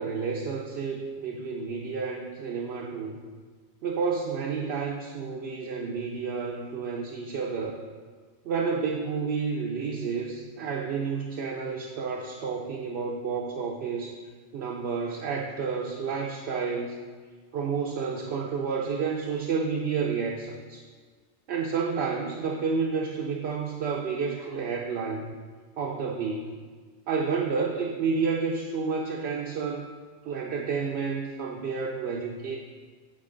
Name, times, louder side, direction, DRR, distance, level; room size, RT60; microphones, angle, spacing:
voice 1, 0.0-3.2 3.8-7.8 8.4-14.2 14.5-17.0 17.5-20.8 21.5-25.3 25.8-26.5 27.1-29.8 30.2-32.6, right 5 dB, 70° right, -1 dB, 0.8 m, -30 dB
7.4 x 4.7 x 3.8 m, 1.5 s
omnidirectional pair, 1.2 m